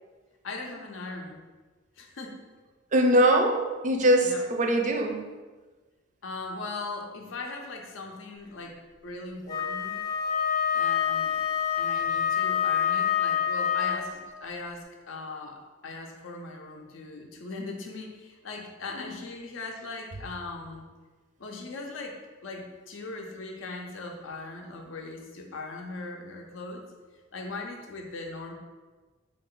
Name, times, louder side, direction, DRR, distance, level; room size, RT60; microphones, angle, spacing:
voice 1, 0.4-1.4 2.0-2.3 4.2-4.5 6.2-8.8 9.0-10.0 10.7-11.4 11.8-20.9 21.4-26.8 27.3-28.5, left 3 dB, 75° left, 2 dB, 0.5 m, -39 dB
voice 2, 2.9-5.2 18.9-19.1, right 1 dB, 40° right, 3 dB, 0.4 m, -22 dB
Wind instrument woodwind instrument, 9.5-14.4, left 8 dB, 20° left, 0.5 m, -27 dB
3.2 x 2.4 x 3.7 m, 1.3 s
head